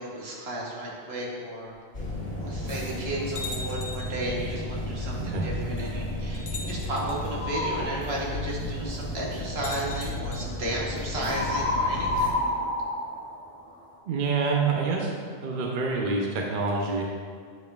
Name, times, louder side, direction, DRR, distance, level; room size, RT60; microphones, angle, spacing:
voice 1, 0.0-1.7 2.4-12.5, right 1 dB, 75° right, -3 dB, 1.3 m, -34 dB
sound 1, 1.9-12.3, left 1 dB, 65° left, 1.8 m, -33 dB
sound 2, 3.4-4.2 5.4-5.5 6.3-7.2 9.5-10.4, left 3 dB, 80° left, 1.0 m, -39 dB
sound 3, 7.3-7.9 11.2-14.0, left 2 dB, 10° left, 0.7 m, -28 dB
voice 2, 14.1-15.1 15.4-17.1, right 4 dB, 55° right, 0 dB, 0.7 m, -27 dB
7.9 x 5.2 x 2.3 m, 2.1 s
omnidirectional pair, 1.1 m